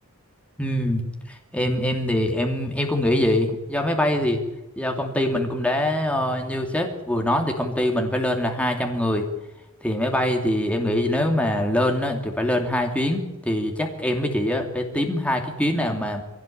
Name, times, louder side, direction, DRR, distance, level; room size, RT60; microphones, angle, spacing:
voice 1, 0.6-4.4 4.8-9.2 9.8-16.2, left 1 dB, 5° left, 3 dB, 2.8 m, -24 dB
23.0 x 17.5 x 8.8 m, 1.0 s
head